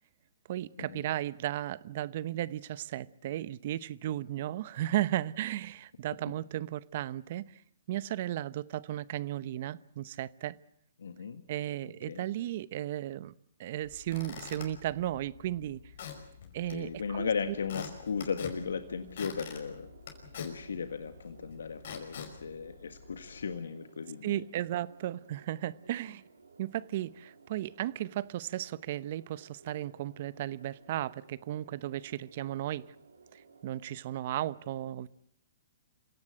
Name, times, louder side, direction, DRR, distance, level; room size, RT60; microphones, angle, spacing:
voice 1, 0.5-7.6 7.9-10.6 11.5-13.3 13.6-15.8 16.5-17.3 24.2-26.2 26.6-32.9 33.3-35.1, right 13 dB, 50° right, 0.8 m, -35 dB
voice 2, 11.0-11.4 11.8-12.2 16.4-19.9 20.4-24.4, left 6 dB, 80° left, 1.7 m, -36 dB
Squeak / Wood, 13.8-23.4, left 6 dB, 60° left, 5.4 m, -47 dB
sound 1, 16.6-34.0, right 5 dB, 90° right, 3.5 m, -58 dB
27.0 x 17.0 x 7.8 m
hypercardioid pair, 140°, 0 cm